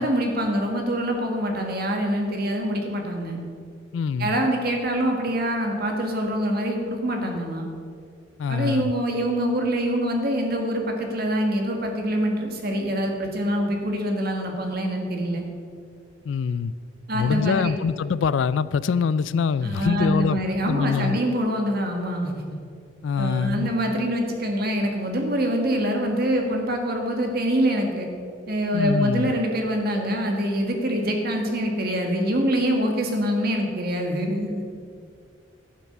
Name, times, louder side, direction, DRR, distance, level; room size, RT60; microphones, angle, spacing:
voice 1, 0.0-3.4 4.2-7.7 8.5-15.4 17.1-17.8 19.6-22.4 23.2-28.1 28.5-34.6, equal, 50° right, 1.8 m, -25 dB
voice 2, 3.9-4.3 8.4-8.9 16.2-16.7 17.1-20.4 20.7-21.2 23.0-23.7 28.7-29.3, left 6 dB, 70° left, 0.3 m, -24 dB
11.5 x 7.3 x 6.7 m
head